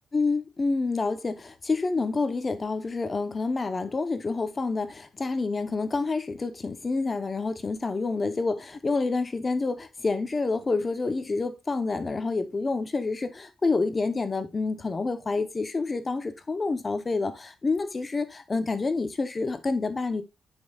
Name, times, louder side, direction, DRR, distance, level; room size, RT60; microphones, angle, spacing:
voice 1, 0.1-20.2, left 3 dB, 30° left, 0.8 m, -28 dB
10.0 x 5.4 x 2.3 m
cardioid pair, 110°, 0 cm